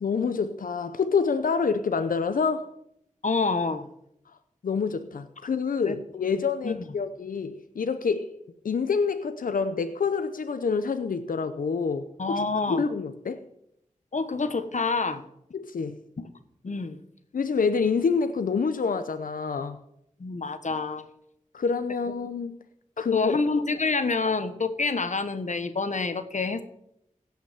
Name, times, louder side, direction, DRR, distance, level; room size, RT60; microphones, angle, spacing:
voice 1, 0.0-2.7 4.6-8.3 8.6-12.4 12.7-13.4 15.5-16.0 17.3-19.8 21.5-22.6 23.0-23.3, left 5 dB, 90° left, 0.7 m, -27 dB
voice 2, 3.2-3.9 5.8-6.0 6.6-6.8 12.2-12.8 14.1-15.2 16.2-16.3 16.6-17.0 20.2-21.1 23.0-26.6, left 4 dB, 60° left, 1.3 m, -27 dB
17.0 x 5.8 x 7.1 m
cardioid pair, 50°, 14 cm